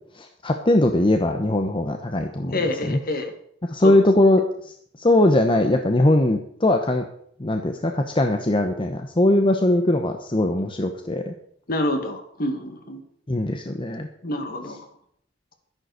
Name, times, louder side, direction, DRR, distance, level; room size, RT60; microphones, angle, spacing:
voice 1, 0.1-2.6 2.9-3.0 3.6-7.1 7.4-11.3 13.3-14.1, left 1 dB, 25° left, 5 dB, 1.0 m, -20 dB
voice 2, 2.4-3.3 3.8-4.0 11.7-13.0 14.2-14.8, left 1 dB, 50° left, 6 dB, 2.2 m, -27 dB
12.5 x 10.5 x 6.6 m, 0.66 s
head